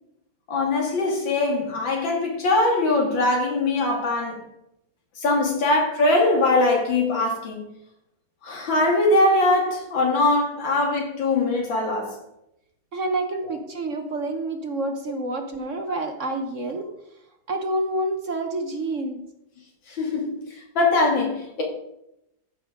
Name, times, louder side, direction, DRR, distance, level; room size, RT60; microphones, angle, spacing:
voice 1, 0.5-4.4 5.2-7.6 8.4-12.2 15.9-16.0 19.9-20.4 20.7-21.6, left 2 dB, 85° left, 3.1 m, -22 dB
voice 2, 12.9-16.9 17.5-19.2, right 2 dB, 45° right, 1.3 m, -28 dB
14.0 x 5.6 x 5.1 m
omnidirectional pair, 2.0 m